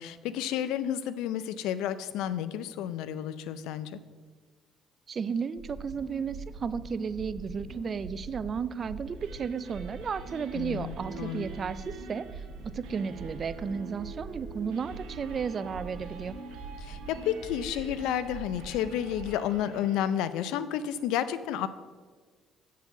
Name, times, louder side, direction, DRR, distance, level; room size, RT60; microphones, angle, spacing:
voice 1, 0.0-4.0 10.5-11.5 16.8-21.7, left 10 dB, 85° left, 14 dB, 0.4 m, -31 dB
voice 2, 5.1-12.4 12.7-16.4, right 6 dB, 45° right, 16 dB, 0.4 m, -33 dB
sound 1, 5.6-19.3, right 3 dB, 70° right, 1.6 m, -43 dB
sound 2, 9.0-20.2, right 4 dB, 85° right, 1.4 m, -48 dB
8.1 x 4.7 x 6.9 m, 1.4 s
supercardioid pair, 80°, 0 cm